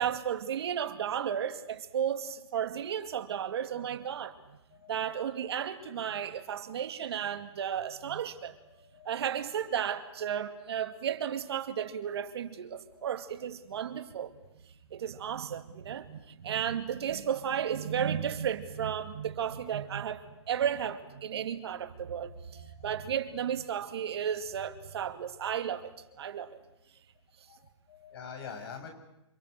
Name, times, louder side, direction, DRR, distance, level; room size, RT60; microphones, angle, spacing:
voice 1, 0.0-4.4 4.9-8.5 9.1-14.3 14.9-20.2 20.5-25.9 26.2-26.6, right 9 dB, 60° right, 2.4 m, -33 dB
voice 2, 3.1-3.5 3.7-3.9 4.2-4.4 4.7-5.1 8.8-9.2 11.9-12.0 12.9-13.0 19.4-19.5 21.5-21.6 22.6-22.8 26.1-26.5 27.5-28.9, left 6 dB, 55° left, 7.0 m, -48 dB
28.5 x 26.5 x 6.7 m
hypercardioid pair, 150°, 15 cm